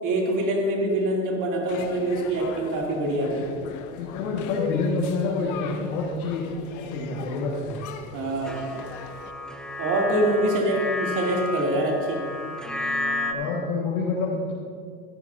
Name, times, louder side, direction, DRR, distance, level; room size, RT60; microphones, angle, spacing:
voice 1, 0.0-3.4 8.1-8.6 9.8-12.2, right 1 dB, 45° right, -2 dB, 2.9 m, -24 dB
sound 1, 1.7-9.3, left 7 dB, 45° left, 0.9 m, -39 dB
voice 2, 3.9-6.4 6.7-7.8 13.3-14.5, left 3 dB, 80° left, -4 dB, 1.9 m, -27 dB
sound 2, 8.5-13.3, left 2 dB, ahead, 0.8 m, -32 dB
14.5 x 11.5 x 2.7 m, 2.2 s
hypercardioid pair, 100°, 41 cm